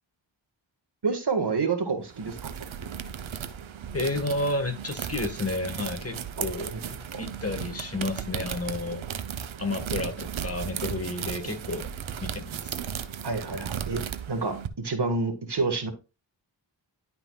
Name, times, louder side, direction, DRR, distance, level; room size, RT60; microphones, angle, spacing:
voice 1, 1.0-2.5 6.7-6.8 7.1-7.2 13.2-14.0 14.3-15.9, right 4 dB, 60° right, 1.8 m, -28 dB
sound 1, 2.1-14.7, right 8 dB, 80° right, 0.8 m, -36 dB
voice 2, 3.9-6.7 7.2-9.1 9.6-11.9 12.2-12.7, left 2 dB, 30° left, 1.6 m, -31 dB
11.0 x 5.7 x 2.4 m
cardioid pair, 50°, 47 cm